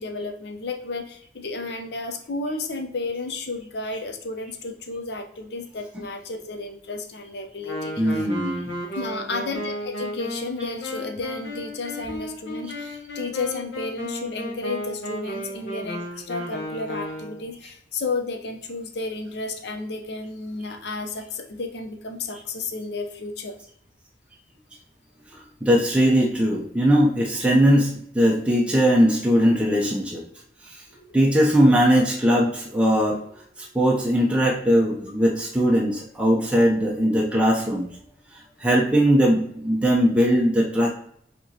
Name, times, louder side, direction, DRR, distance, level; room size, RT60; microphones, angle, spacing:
voice 1, 0.0-8.3 8.9-23.6 30.9-31.2, left 3 dB, 65° left, 6 dB, 0.6 m, -32 dB
Wind instrument woodwind instrument, 7.6-17.5, left 1 dB, 85° left, 1.0 m, -34 dB
voice 2, 8.0-8.7 10.6-10.7 13.5-13.6 25.6-30.2 30.7-30.8 31.1-33.2 33.6-37.9 38.6-40.9, equal, 5° right, -2 dB, 0.5 m, -20 dB
5.0 x 2.9 x 2.7 m, 0.68 s
head